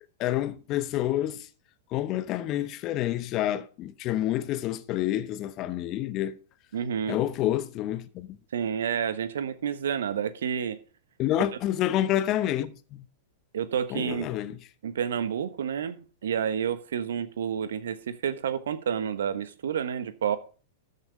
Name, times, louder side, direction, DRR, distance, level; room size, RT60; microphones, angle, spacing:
voice 1, 0.2-1.5 1.9-6.4 7.1-8.4 11.2-12.7 13.9-14.6, left 13 dB, 40° left, 1.1 m, -28 dB
voice 2, 6.7-7.2 8.5-10.8 11.4-11.5 13.5-14.3 14.8-20.4, right 8 dB, 70° right, 1.2 m, -29 dB
14.0 x 6.9 x 4.9 m
figure-of-eight pair, 100°, 0 cm